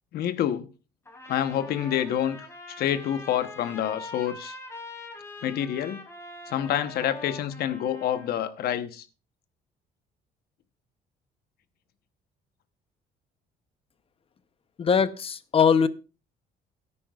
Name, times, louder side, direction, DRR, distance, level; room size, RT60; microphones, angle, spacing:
voice 1, 0.1-0.7 1.3-2.5 2.8-4.6 5.4-6.0 6.5-9.1, left 10 dB, 65° left, 1.0 m, -27 dB
Trumpet, 1.1-8.4, left 2 dB, 15° left, 2.8 m, -43 dB
voice 2, 14.8-15.9, left 6 dB, 35° left, 0.8 m, -21 dB
17.5 x 9.8 x 2.4 m
cardioid pair, 110°, 17 cm